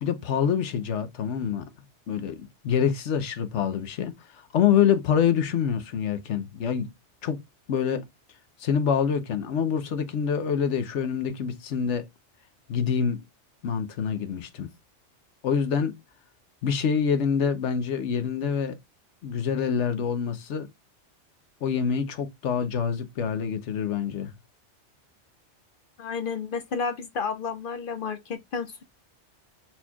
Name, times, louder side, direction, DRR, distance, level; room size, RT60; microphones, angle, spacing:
voice 1, 0.0-1.7 2.1-6.9 7.2-7.4 7.7-8.0 8.6-12.0 12.7-13.2 13.6-14.7 15.4-15.9 16.6-18.8 19.2-20.7 21.6-24.3, left 7 dB, 80° left, 1.1 m, -26 dB
voice 2, 26.0-28.8, left 5 dB, 60° left, 0.6 m, -31 dB
4.4 x 4.2 x 2.2 m
omnidirectional pair, 1.2 m